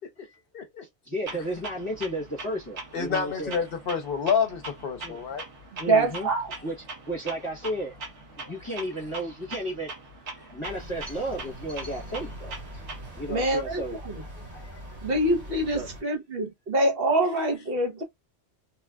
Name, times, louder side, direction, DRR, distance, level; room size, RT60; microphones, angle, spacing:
voice 1, 0.5-0.8 2.9-5.5 8.4-8.5 14.5-14.8, left 6 dB, 55° left, 0.9 m, -29 dB
voice 2, 1.0-3.6 5.0-5.2 5.8-6.3 6.6-8.0 8.4-9.9 10.5-12.5 13.2-14.0 15.7-15.9, right 1 dB, 30° left, 0.9 m, -33 dB
Clock, 1.3-13.3, right 2 dB, 80° right, 1.3 m, -42 dB
voice 3, 5.7-6.5 13.3-14.2 15.0-18.0, right 2 dB, 55° right, 1.2 m, -25 dB
sound 1, 10.6-16.0, equal, 35° right, 1.4 m, -42 dB
3.2 x 2.4 x 2.3 m
omnidirectional pair, 1.2 m